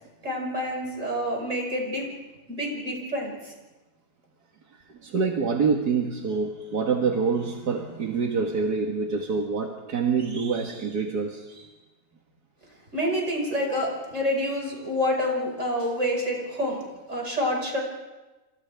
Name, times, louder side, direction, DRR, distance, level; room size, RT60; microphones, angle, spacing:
voice 1, 0.2-2.1 2.5-3.5 12.9-16.8 17.1-17.8, equal, 50° right, 0 dB, 5.9 m, -28 dB
voice 2, 5.0-11.7, right 5 dB, 75° right, 1 dB, 2.2 m, -26 dB
28.5 x 27.0 x 3.5 m, 1.1 s
omnidirectional pair, 1.7 m